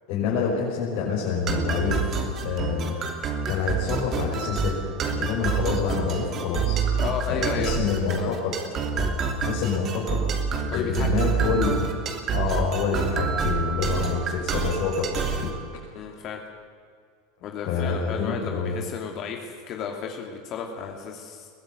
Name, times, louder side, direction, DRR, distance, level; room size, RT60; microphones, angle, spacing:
voice 1, 0.1-4.8 5.1-6.8 7.3-8.5 8.9-10.2 10.7-11.8 12.3-15.6 17.6-18.8, left 5 dB, 65° left, -5 dB, 6.2 m, -27 dB
sound 1, 1.5-15.5, right 5 dB, 40° right, 3.0 m, -27 dB
voice 2, 7.0-8.3 10.7-11.1 14.0-14.1 15.9-16.4 17.4-21.5, left 6 dB, 45° left, 2 dB, 2.8 m, -33 dB
22.0 x 15.0 x 9.3 m, 2.1 s
supercardioid pair, 125°, 0 cm